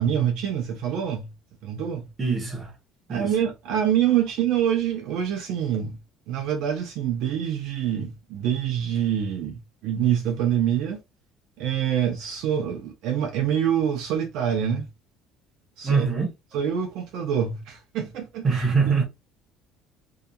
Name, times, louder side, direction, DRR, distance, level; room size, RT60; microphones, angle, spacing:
voice 1, 0.0-1.3 1.6-2.1 3.1-6.0 6.3-11.0 11.6-14.9 15.8-16.1 16.5-18.7, right 9 dB, 60° right, 0.6 m, -26 dB
voice 2, 2.2-2.7 3.1-3.3 15.8-16.3 18.4-19.0, right 5 dB, 20° right, 0.9 m, -23 dB
2.7 x 2.3 x 2.3 m
cardioid pair, 175°, 0 cm